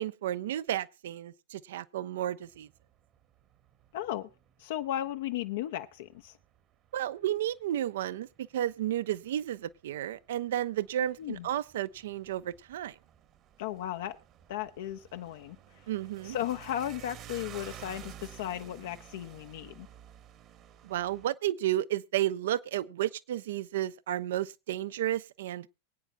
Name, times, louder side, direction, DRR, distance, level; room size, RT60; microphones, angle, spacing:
voice 1, 0.0-2.7 6.9-8.3 8.5-12.9 15.9-16.4 20.8-25.7, right 12 dB, 65° right, 0.5 m, -32 dB
sound 1, 2.4-21.3, right 10 dB, 40° right, 1.2 m, -53 dB
voice 2, 3.9-4.3 4.6-6.4 11.2-11.5 13.6-14.2 14.5-15.6 16.2-19.9, left 12 dB, 60° left, 0.6 m, -35 dB
23.5 x 9.0 x 2.2 m
figure-of-eight pair, 90°, 0 cm